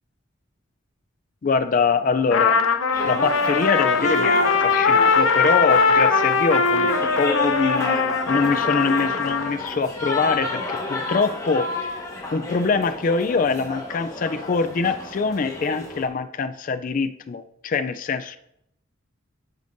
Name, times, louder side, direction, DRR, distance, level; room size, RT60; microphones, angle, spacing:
voice 1, 1.4-2.6 3.0-11.7 12.3-18.4, left 4 dB, 40° left, 9 dB, 0.4 m, -24 dB
Trumpet, 2.3-9.5, left 4 dB, 90° left, 0.7 m, -20 dB
sound 1, 2.9-16.1, left 2 dB, 15° left, 1.2 m, -32 dB
13.5 x 5.1 x 2.6 m, 0.79 s
head